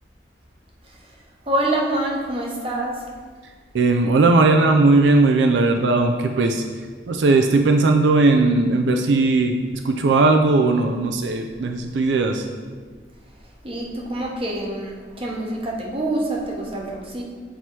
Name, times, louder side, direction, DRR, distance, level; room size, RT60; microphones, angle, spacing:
voice 1, 0.8-1.2 1.4-3.1 13.6-17.2, right 1 dB, 30° right, -2 dB, 0.9 m, -26 dB
voice 2, 3.7-6.6 7.1-12.4, right 3 dB, 85° right, 5 dB, 0.4 m, -18 dB
7.8 x 2.8 x 4.5 m, 1.5 s
head